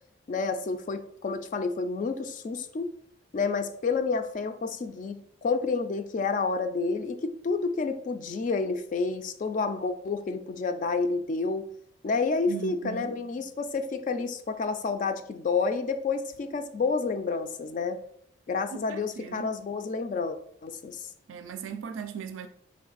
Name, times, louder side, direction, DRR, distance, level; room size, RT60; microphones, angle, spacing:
voice 1, 0.3-2.9 3.3-11.7 12.0-18.0 18.5-21.1, left 4 dB, 40° left, 0.3 m, -29 dB
voice 2, 12.5-13.2 18.7-19.6 21.3-22.5, right 7 dB, 70° right, 0.3 m, -38 dB
4.3 x 3.1 x 3.9 m
head